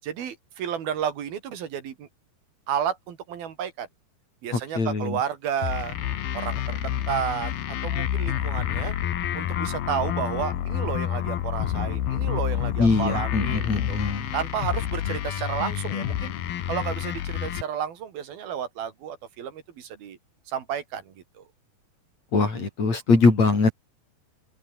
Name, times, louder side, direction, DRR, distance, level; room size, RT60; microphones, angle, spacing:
voice 1, 0.0-2.1 2.7-3.9 4.4-6.0 6.3-7.5 7.8-8.9 9.3-14.0 14.3-16.3 16.7-20.2 20.5-21.4, right 8 dB, 75° right, 4.2 m, -31 dB
voice 2, 4.5-5.2 12.8-14.3 22.3-23.7, left 3 dB, 45° left, 7.0 m, -22 dB
sound 1, 5.6-17.6, left 11 dB, 75° left, 3.7 m, -28 dB
open air
omnidirectional pair, 4.4 m